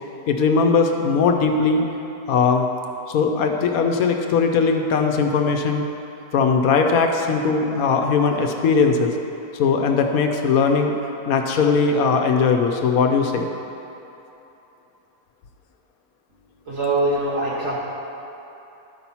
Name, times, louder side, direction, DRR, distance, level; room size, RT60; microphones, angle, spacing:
voice 1, 0.3-1.8 2.3-2.7 3.1-5.8 6.3-9.1 9.5-10.9 11.3-13.5, left 5 dB, 75° left, 3 dB, 1.1 m, -19 dB
voice 2, 16.7-17.8, right 2 dB, 60° right, -8 dB, 1.5 m, -22 dB
12.0 x 4.4 x 5.5 m, 3.0 s
omnidirectional pair, 1.5 m